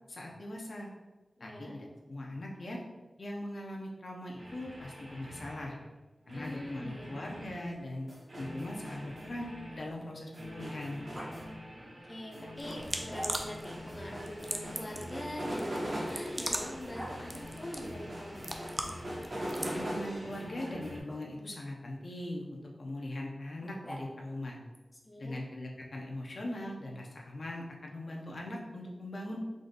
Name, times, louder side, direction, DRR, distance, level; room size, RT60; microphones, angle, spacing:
voice 1, 0.1-0.9 1.4-2.8 3.2-5.8 6.3-8.1 8.4-11.0 19.7-22.5 22.8-24.6 25.2-29.4, left 1 dB, 60° left, -1 dB, 0.9 m, -40 dB
voice 2, 1.4-1.8 6.3-7.2 11.8-18.5 24.9-25.3, left 1 dB, 35° left, -1 dB, 0.9 m, -43 dB
sound 1, 4.4-5.9 6.3-21.0, equal, 50° right, 1.2 m, -42 dB
Growling, 7.0-10.4 11.1-11.3 12.6-13.7 15.1-17.2 19.0-19.7 21.0-21.2 23.6-24.4, equal, 10° right, 0.8 m, -49 dB
sound 2, 12.6-19.8, right 1 dB, 30° right, 0.5 m, -41 dB
5.0 x 3.9 x 2.6 m, 1.2 s
wide cardioid pair, 85°, 0 cm